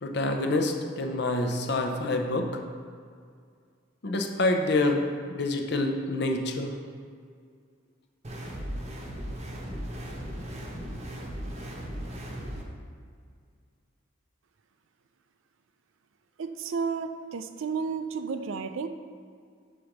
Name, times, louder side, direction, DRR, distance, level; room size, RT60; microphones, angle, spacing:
voice 1, 0.0-2.5 4.0-5.0 5.3-6.7, left 2 dB, 55° left, 4 dB, 0.7 m, -27 dB
sound 1, 8.2-12.6, equal, 30° right, 0.8 m, -37 dB
voice 2, 16.4-18.9, right 5 dB, 80° right, 9 dB, 0.4 m, -32 dB
5.2 x 5.0 x 5.9 m, 2.1 s
head